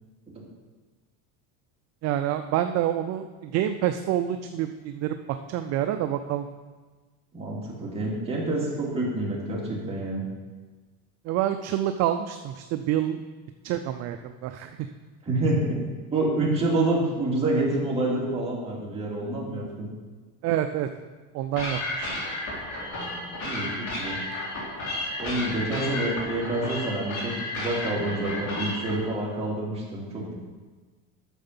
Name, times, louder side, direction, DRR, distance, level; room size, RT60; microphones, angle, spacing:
voice 1, 2.0-5.2 5.5-6.5 11.3-13.2 13.6-14.7 20.4-20.9 21.3-22.1, right 11 dB, 45° right, 8 dB, 0.4 m, -27 dB
voice 2, 7.3-10.2 15.2-15.8 16.1-19.9 22.9-24.2 25.2-30.4, right 2 dB, 15° right, -5 dB, 2.5 m, -28 dB
sound 1, 21.6-29.0, left 1 dB, 45° left, 2.9 m, -32 dB
9.0 x 6.7 x 5.6 m, 1.3 s
cardioid pair, 140°, 39 cm